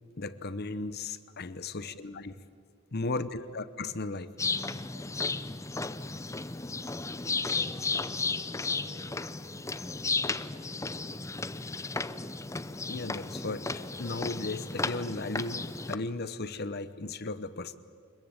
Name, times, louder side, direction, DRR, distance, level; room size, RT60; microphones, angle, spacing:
voice 1, 0.2-2.3 2.9-4.3 12.9-17.8, left 3 dB, 50° left, 14 dB, 0.9 m, -36 dB
voice 2, 1.6-2.1 2.9-3.5 4.8-5.3 7.6-11.5, equal, 60° right, 1 dB, 7.2 m, -57 dB
sound 1, 4.4-15.9, left 3 dB, 15° left, 0.6 m, -34 dB
25.5 x 21.5 x 8.9 m, 2.2 s
head